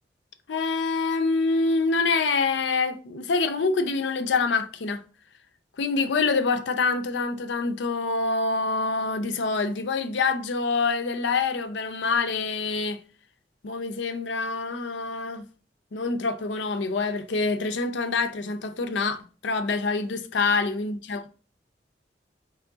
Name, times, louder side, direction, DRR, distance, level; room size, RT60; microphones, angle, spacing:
voice 1, 0.5-5.0 5.8-13.0 13.6-15.5 15.9-21.3, left 4 dB, 75° left, 0.5 m, -26 dB
3.5 x 3.1 x 3.8 m
head